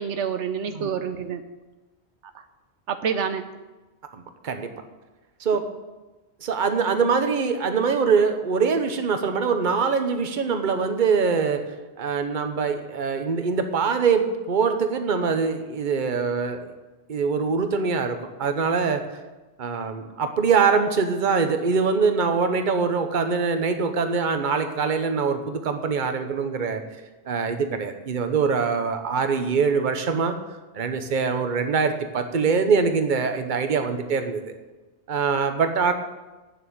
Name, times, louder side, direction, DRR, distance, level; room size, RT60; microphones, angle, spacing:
voice 1, 0.0-1.4 2.9-3.5, right 7 dB, 85° right, 9 dB, 1.1 m, -27 dB
voice 2, 4.1-4.7 5.4-5.6 6.4-16.7 17.1-19.2 19.6-26.8 27.3-30.3 30.7-34.4 35.1-35.9, right 5 dB, 45° right, 7 dB, 1.1 m, -23 dB
8.9 x 7.3 x 8.7 m, 1.2 s
omnidirectional pair, 1.2 m